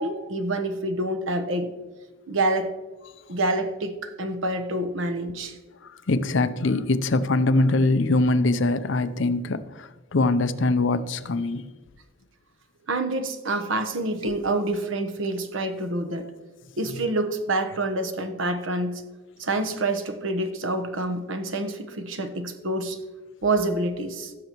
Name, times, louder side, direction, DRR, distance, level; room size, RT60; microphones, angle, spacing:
voice 1, 0.0-1.7 2.3-2.7 3.3-5.6 12.9-16.3 16.8-19.0 19.4-23.0 23.4-24.3, right 2 dB, 65° right, 7 dB, 1.0 m, -27 dB
voice 2, 6.1-11.6, left 2 dB, 60° left, 11 dB, 0.6 m, -23 dB
15.5 x 6.7 x 3.0 m, 1.3 s
head